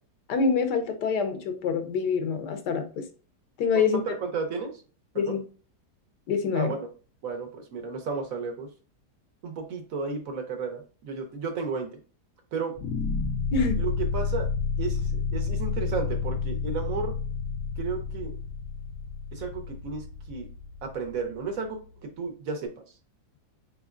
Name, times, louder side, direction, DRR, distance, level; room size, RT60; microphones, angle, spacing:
voice 1, 0.3-3.0 3.6-4.0 5.1-5.4 6.3-6.7 13.5-13.8, left 5 dB, 80° left, 7 dB, 1.3 m, -26 dB
voice 2, 3.7-4.7 5.1-5.4 6.5-6.9 7.2-8.7 9.4-12.0 12.5-12.7 13.8-14.5 14.8-17.2 17.8-18.4 19.3-20.5 20.8-21.8 22.2-22.7, right 4 dB, 65° right, 4 dB, 1.0 m, -33 dB
sound 1, 12.8-21.9, left 5 dB, 65° left, 0.8 m, -31 dB
4.1 x 3.8 x 2.4 m, 0.38 s
omnidirectional pair, 1.8 m